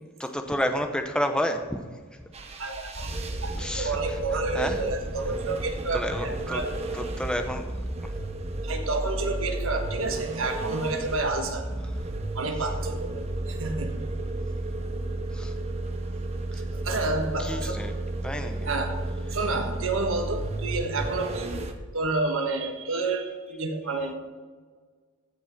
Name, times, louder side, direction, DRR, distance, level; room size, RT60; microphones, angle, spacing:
voice 1, 0.2-1.8 2.1-2.2 3.6-4.2 4.5-4.8 5.9-6.6 6.9-7.7 15.3-15.5 16.5-16.6 17.4-17.9 18.2-18.7, equal, 5° left, 6 dB, 0.8 m, -30 dB
sound 1, 2.3-21.7, right 2 dB, 30° right, 0.9 m, -32 dB
voice 2, 2.6-6.7 8.6-11.7 12.3-13.9 16.7-18.0 18.6-24.1, right 3 dB, 70° right, 4 dB, 1.5 m, -30 dB
15.0 x 5.4 x 6.0 m, 1.5 s
head